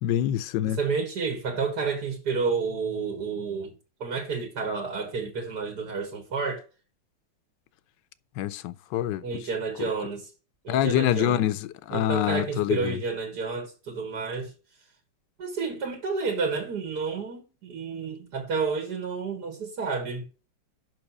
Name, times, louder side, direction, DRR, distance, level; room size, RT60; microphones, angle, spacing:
voice 1, 0.0-0.8 8.4-9.2 10.7-13.0, left 12 dB, 75° left, 1.2 m, -25 dB
voice 2, 0.7-3.7 4.0-6.6 9.2-10.3 10.6-11.4 11.9-14.5 15.4-20.2, right 4 dB, 60° right, 2.0 m, -30 dB
6.2 x 5.9 x 5.8 m
omnidirectional pair, 2.0 m